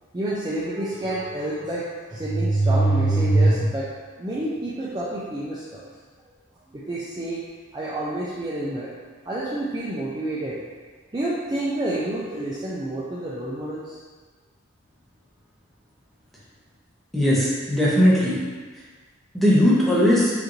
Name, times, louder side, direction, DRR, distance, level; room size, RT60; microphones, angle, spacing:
voice 1, 0.1-5.9 6.7-7.4 7.7-8.9 9.3-10.6 11.1-14.0, right 2 dB, 20° right, -7 dB, 0.4 m, -26 dB
voice 2, 17.1-18.4 19.3-20.3, equal, ahead, -8 dB, 0.8 m, -18 dB
5.0 x 2.6 x 3.0 m, 1.4 s
head